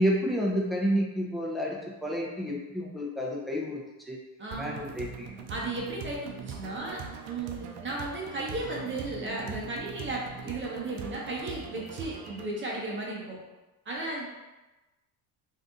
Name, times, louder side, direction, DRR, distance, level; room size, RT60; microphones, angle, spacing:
voice 1, 0.0-1.8 2.0-3.8 4.1-4.2 4.6-5.3, equal, ahead, -3 dB, 0.6 m, -29 dB
voice 2, 4.4-4.7 5.5-7.0 7.3-13.4 13.8-14.3, right 2 dB, 30° right, -3 dB, 1.0 m, -35 dB
sound 1, 4.5-12.5, right 6 dB, 65° right, 0.6 m, -42 dB
2.7 x 2.5 x 3.6 m, 1.1 s
supercardioid pair, 95°, 40 cm